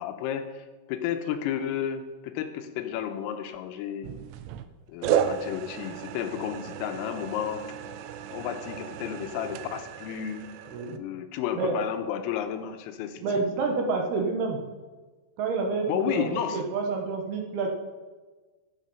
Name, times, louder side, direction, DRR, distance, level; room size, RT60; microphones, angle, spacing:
voice 1, 0.0-4.1 4.9-7.6 8.3-10.5 10.8-13.6 15.9-16.6, left 9 dB, 90° left, 6 dB, 3.6 m, -32 dB
sound 1, 4.0-4.7 5.0-11.0, right 9 dB, 85° right, 2.9 m, -33 dB
voice 2, 13.2-14.6 15.4-17.7, right 4 dB, 70° right, 2 dB, 2.7 m, -28 dB
14.5 x 7.7 x 5.5 m, 1.3 s
omnidirectional pair, 5.9 m